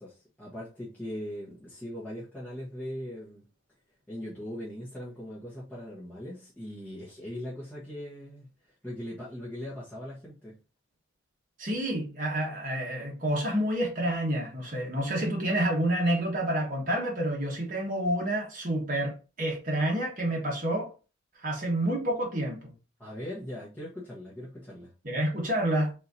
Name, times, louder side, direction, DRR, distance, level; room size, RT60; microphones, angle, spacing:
voice 1, 0.0-3.4 4.1-10.6 23.0-24.9, equal, 10° left, 1.2 m, -40 dB
voice 2, 11.6-20.9 21.4-22.7 25.0-25.9, right 1 dB, 40° right, 1.4 m, -29 dB
4.3 x 3.7 x 2.7 m
head